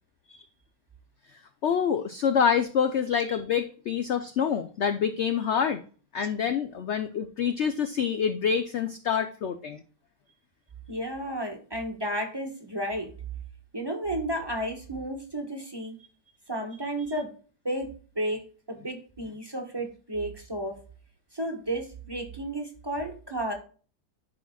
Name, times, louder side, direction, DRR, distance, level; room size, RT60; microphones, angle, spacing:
voice 1, 1.6-5.8 6.1-9.8, left 7 dB, 65° left, 9 dB, 0.7 m, -26 dB
voice 2, 10.9-13.1 13.7-16.0 16.5-17.3 17.6-20.8 21.3-23.5, right 1 dB, 15° right, 2 dB, 1.2 m, -32 dB
11.5 x 5.0 x 2.3 m, 0.39 s
omnidirectional pair, 1.8 m